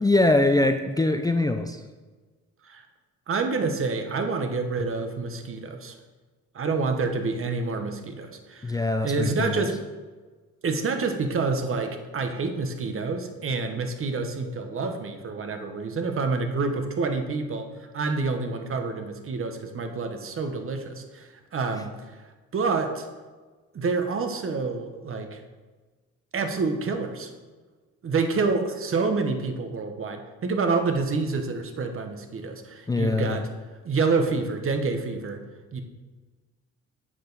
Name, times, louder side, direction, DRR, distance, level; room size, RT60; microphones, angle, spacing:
voice 1, 0.0-1.8 8.6-9.7 32.9-33.5, left 2 dB, 15° left, 7 dB, 0.4 m, -23 dB
voice 2, 3.3-5.9 6.5-8.7 9.0-9.8 10.6-21.9 22.5-23.1 23.7-25.4 26.3-27.3 28.0-33.5 33.8-35.4 35.7-35.8, right 4 dB, 45° right, 6 dB, 1.1 m, -28 dB
7.6 x 6.5 x 4.0 m, 1.3 s
cardioid pair, 90°, 30 cm